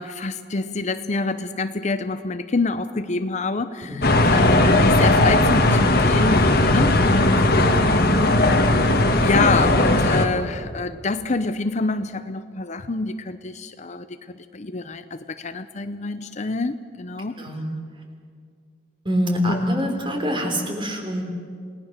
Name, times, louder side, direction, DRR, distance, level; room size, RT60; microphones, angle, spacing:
voice 1, 0.0-8.2 8.5-8.6 9.2-17.4 19.5-19.6, left 3 dB, 40° left, 11 dB, 0.7 m, -27 dB
voice 2, 3.9-4.4 17.4-17.6 19.1-21.2, equal, 30° right, 3 dB, 3.6 m, -25 dB
sound 1, 4.0-10.3, left 2 dB, 55° left, 1.7 m, -17 dB
28.5 x 19.0 x 6.6 m, 2.1 s
head